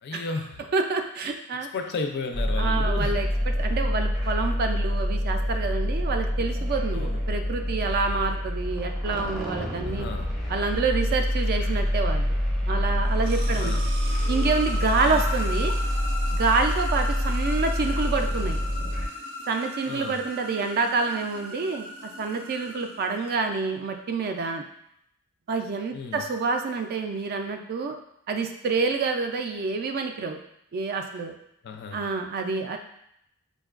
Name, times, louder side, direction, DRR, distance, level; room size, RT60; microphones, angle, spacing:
voice 1, 0.0-0.6 1.7-3.2 6.9-7.2 9.8-10.4 13.5-13.9 15.0-15.2 19.9-20.2 25.9-26.2 31.6-32.0, left 4 dB, 50° left, 5 dB, 0.4 m, -34 dB
voice 2, 0.7-1.7 2.6-3.3 3.6-10.1 10.5-12.4 12.7-13.8 14.3-15.7 16.3-18.6 19.5-24.6 25.5-28.0 28.3-30.4 30.7-31.4 31.9-32.8, right 4 dB, 45° right, 5 dB, 0.3 m, -27 dB
sound 1, 2.3-19.1, equal, ahead, 0.6 m, -26 dB
sound 2, 12.9-23.6, left 1 dB, 75° right, 0.7 m, -37 dB
5.0 x 2.2 x 2.3 m, 0.74 s
head